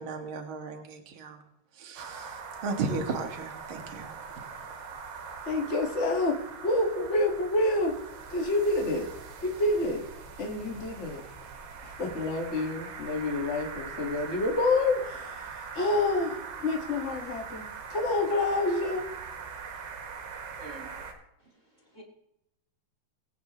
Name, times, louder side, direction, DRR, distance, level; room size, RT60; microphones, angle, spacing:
voice 1, 0.0-1.4 1.8-2.4 2.6-4.1, right 4 dB, 50° right, 3 dB, 1.6 m, -35 dB
sound 1, 2.0-21.1, right 5 dB, 85° right, 3.7 m, -42 dB
voice 2, 5.5-7.9 8.3-9.1 9.4-10.0 10.4-11.2 11.8-15.5 15.7-16.3 16.6-19.0, left 2 dB, 45° left, 1 dB, 0.8 m, -28 dB
voice 3, 20.6-20.9 21.4-22.0, right 2 dB, 25° right, 0 dB, 1.9 m, -48 dB
21.5 x 8.9 x 3.1 m, 0.81 s
omnidirectional pair, 4.6 m